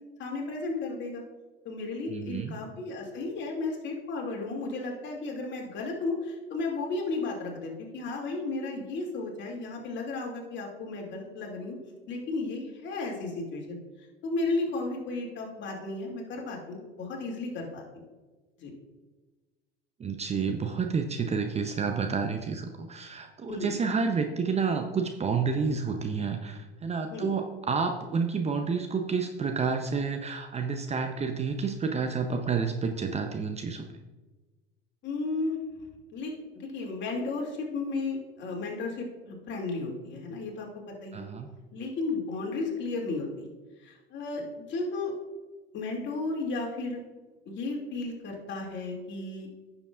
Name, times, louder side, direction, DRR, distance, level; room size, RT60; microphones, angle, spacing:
voice 1, 0.2-1.2 1.6-11.8 12.1-13.8 14.2-18.0 18.6-18.7 23.5-23.7 27.1-27.3 35.0-35.5 36.1-40.7 41.0-41.3 41.7-43.3 43.8-45.1 45.7-47.0 47.5-49.5, left 3 dB, 40° left, 0 dB, 2.6 m, -34 dB
voice 2, 2.1-2.6 20.0-33.8 41.1-41.5, right 5 dB, 20° right, 5 dB, 0.7 m, -29 dB
16.0 x 7.0 x 2.5 m, 1.3 s
figure-of-eight pair, 70°, 29 cm